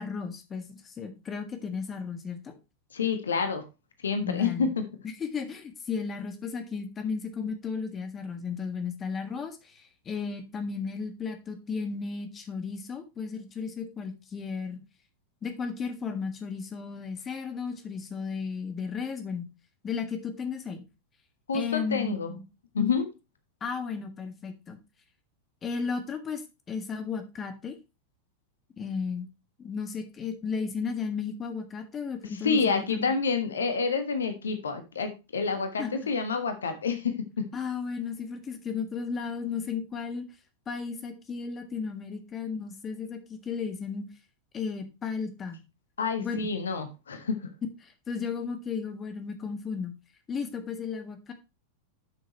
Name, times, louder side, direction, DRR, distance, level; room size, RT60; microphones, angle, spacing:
voice 1, 0.0-2.6 4.2-4.7 5.2-14.8 15.4-19.5 19.8-20.8 21.5-22.4 22.8-23.0 23.6-24.8 25.6-26.4 26.7-27.8 28.8-29.3 29.6-33.1 35.8-36.1 37.5-40.2 40.7-44.0 44.5-45.6 46.2-46.4 47.8-49.9 50.3-51.3, left 5 dB, 20° left, 7 dB, 1.6 m, -34 dB
voice 2, 2.9-3.6 4.0-4.7 21.5-22.4 22.7-23.0 32.4-37.4 46.0-47.4, left 5 dB, 70° left, 8 dB, 1.4 m, -28 dB
11.5 x 6.4 x 3.0 m, 0.27 s
figure-of-eight pair, 90°, 0 cm